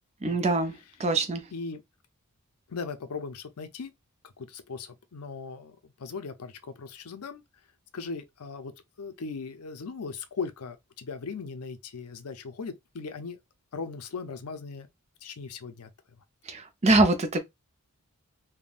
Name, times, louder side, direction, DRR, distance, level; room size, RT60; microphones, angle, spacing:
voice 1, 0.2-0.7 1.0-1.4 16.5-17.4, right 2 dB, 30° right, 0.5 m, -23 dB
voice 2, 1.5-1.8 2.7-3.9 4.4-7.4 7.9-8.7 9.0-13.4 13.7-14.9 15.2-15.9, left 4 dB, 80° left, 0.5 m, -38 dB
3.5 x 2.1 x 2.4 m
head